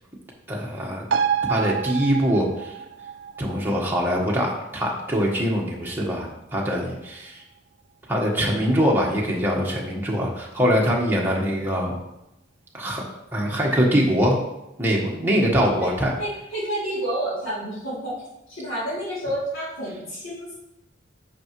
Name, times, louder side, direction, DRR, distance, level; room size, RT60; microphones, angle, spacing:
voice 1, 0.5-1.0 1.5-2.7 3.4-7.4 8.1-12.0 12.7-13.0 13.3-14.4 14.8-16.1, equal, 10° right, -3 dB, 1.3 m, -23 dB
sound 1, 1.1-8.1 8.4-8.5, right 7 dB, 65° right, 0.4 m, -31 dB
voice 2, 16.2-18.2 18.5-20.5, right 1 dB, 85° left, -7 dB, 2.9 m, -29 dB
8.7 x 5.9 x 3.1 m, 0.89 s
head